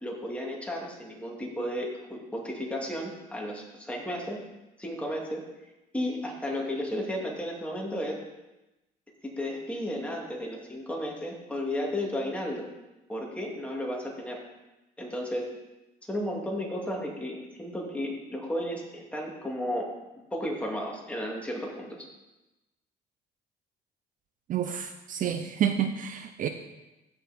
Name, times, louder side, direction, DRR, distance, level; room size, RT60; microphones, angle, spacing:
voice 1, 0.0-4.4 4.8-5.4 5.9-8.2 9.4-12.7 13.1-14.4 15.0-15.5 16.1-19.9 20.3-22.1, left 1 dB, 5° left, -2 dB, 2.6 m, -33 dB
voice 2, 24.5-26.5, right 9 dB, 50° right, 7 dB, 0.7 m, -29 dB
15.5 x 5.8 x 4.4 m, 1.0 s
cardioid pair, 110°, 17 cm